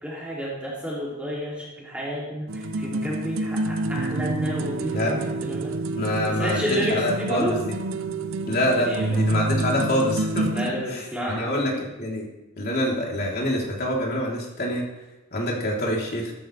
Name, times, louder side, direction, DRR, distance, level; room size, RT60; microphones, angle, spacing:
voice 1, 0.0-5.7 6.2-7.5 8.7-9.2 10.5-11.5, equal, 5° right, -6 dB, 2.8 m, -30 dB
sound 1, 2.5-10.7, right 2 dB, 75° right, 0.7 m, -28 dB
voice 2, 4.8-5.2 5.9-7.7 8.5-12.2 12.6-14.8 15.3-16.3, left 1 dB, 50° left, -3 dB, 3.6 m, -26 dB
15.0 x 14.0 x 3.4 m, 1.0 s
head